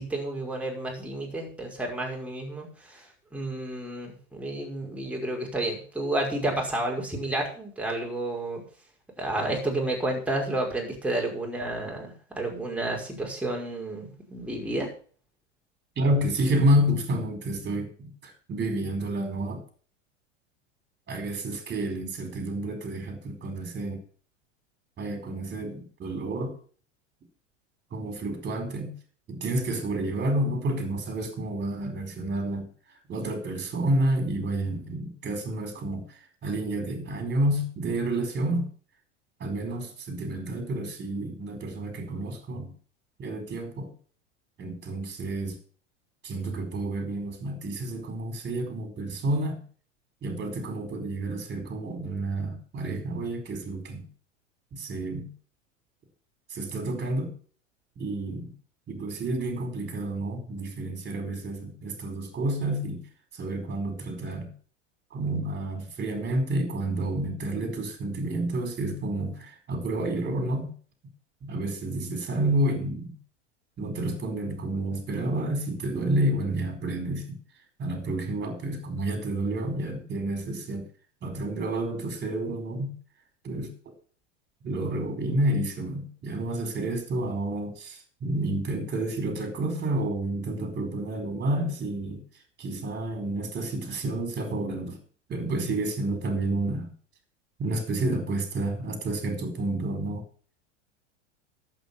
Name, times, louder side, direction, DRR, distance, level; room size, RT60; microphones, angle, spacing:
voice 1, 0.0-3.1 3.3-8.6 9.2-14.9, right 1 dB, 5° right, -1 dB, 5.6 m, -31 dB
voice 2, 16.0-19.6 21.1-24.0 25.0-26.6 27.9-29.0 29.3-32.7 33.1-38.7 39.4-42.7 43.2-43.9 44.6-45.6 46.2-49.6 50.2-54.0 54.7-55.3 56.5-57.3 58.0-58.5 58.9-63.1 63.3-64.5 65.1-70.7 71.4-73.2 73.8-77.4 77.8-80.9 81.2-83.0 83.4-83.7 84.6-92.2 92.6-95.0 95.3-96.9 97.6-100.2, right 1 dB, 30° right, 6 dB, 4.6 m, -30 dB
11.5 x 8.8 x 7.1 m, 0.43 s
hypercardioid pair, 95°, 37 cm